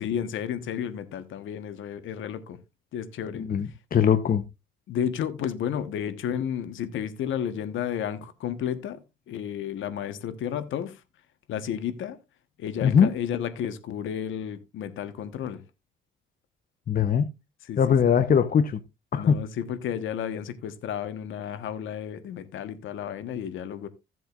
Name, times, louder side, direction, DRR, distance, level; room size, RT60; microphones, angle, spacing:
voice 1, 0.0-2.6 2.9-3.5 4.9-11.0 11.5-12.2 12.6-15.6 17.6-18.1 19.1-23.9, left 9 dB, 75° left, 1.3 m, -32 dB
voice 2, 3.3-4.4 12.8-13.1 16.9-17.3 17.8-18.8 19.1-19.4, left 7 dB, 45° left, 0.9 m, -21 dB
15.0 x 7.7 x 2.5 m
cardioid pair, 90°, 20 cm